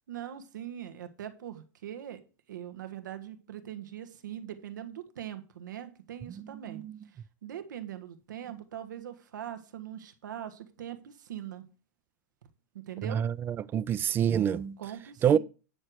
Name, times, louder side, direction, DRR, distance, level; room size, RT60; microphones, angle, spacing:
voice 1, 0.1-2.2 2.5-6.8 7.4-11.6 12.9-13.2 14.8-15.4, right 10 dB, 90° right, 1.5 m, -41 dB
voice 2, 6.7-7.0 13.0-14.8 15.2-15.4, right 9 dB, 20° right, 0.3 m, -27 dB
9.7 x 6.6 x 4.7 m
supercardioid pair, 140°, 10 cm